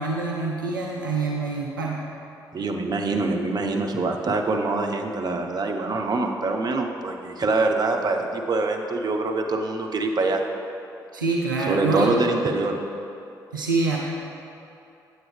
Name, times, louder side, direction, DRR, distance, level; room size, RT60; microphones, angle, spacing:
voice 1, 0.0-2.1 11.1-12.2 13.5-14.0, right 3 dB, 90° right, -2 dB, 0.4 m, -25 dB
voice 2, 2.5-10.4 11.7-12.8, right 3 dB, 40° right, 3 dB, 0.7 m, -24 dB
7.6 x 6.4 x 3.2 m, 2.8 s
figure-of-eight pair, 40°, 11 cm